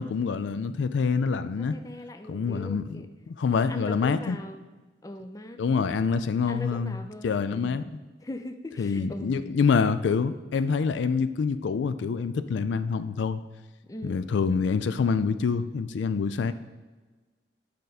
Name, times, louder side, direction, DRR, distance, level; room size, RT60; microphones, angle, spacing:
voice 1, 0.0-1.8 2.3-4.4 5.6-7.8 8.8-13.4 14.0-16.5, left 5 dB, 85° left, 13 dB, 0.4 m, -26 dB
voice 2, 1.6-3.1 3.7-4.6 5.0-5.6 6.5-7.8 8.2-9.5 13.9-14.3, left 1 dB, 20° left, 7 dB, 0.4 m, -39 dB
9.1 x 5.1 x 4.1 m, 1.3 s
head